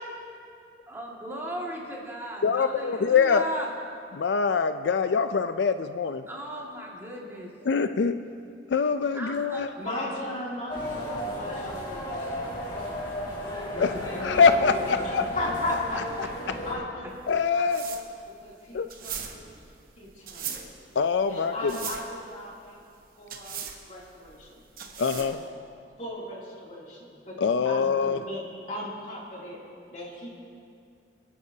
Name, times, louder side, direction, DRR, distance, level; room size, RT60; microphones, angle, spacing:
voice 1, 0.9-3.7 6.3-7.5 9.1-10.2 13.8-14.0 14.3-14.4 14.9-15.0 16.4-16.6, equal, 15° right, 2.0 m, -37 dB
voice 2, 2.4-3.4 4.1-6.2 7.7-8.1 8.7-9.7 13.8-13.9 14.2-15.2 17.3-17.8 18.7-18.9 21.0-21.7 25.0-25.4 27.4-28.2, left 5 dB, 90° left, 0.4 m, -24 dB
voice 3, 9.8-13.0 13.7-16.0 16.7-17.2 17.5-19.4 20.0-20.6 21.3-22.8 23.2-23.6 23.9-24.6 25.1-25.4 26.0-29.6 29.9-30.3, left 1 dB, 45° left, 2.8 m, -37 dB
sound 1, 10.7-16.8, left 1 dB, 25° left, 2.2 m, -34 dB
sound 2, 17.1-25.5, right 7 dB, 55° right, 1.1 m, -40 dB
28.0 x 9.6 x 2.8 m
head